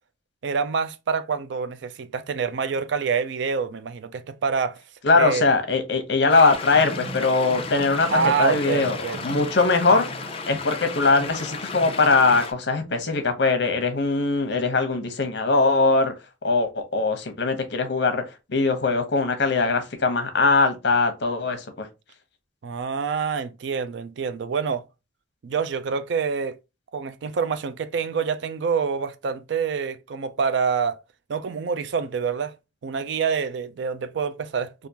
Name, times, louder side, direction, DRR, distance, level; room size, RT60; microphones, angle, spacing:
voice 1, 0.4-4.8 5.2-5.5 8.1-9.2 22.6-24.8 25.4-26.6 26.9-31.0 31.3-32.5 32.8-34.9, right 5 dB, 70° right, 0.4 m, -26 dB
voice 2, 5.0-9.0 9.2-10.1 10.5-16.1 16.4-18.2 18.5-21.9, left 3 dB, 65° left, 0.8 m, -21 dB
sound 1, 6.3-12.5, left 4 dB, 30° left, 0.4 m, -35 dB
sound 2, 6.7-12.4, right 1 dB, 25° right, 0.6 m, -39 dB
3.5 x 2.5 x 2.8 m
head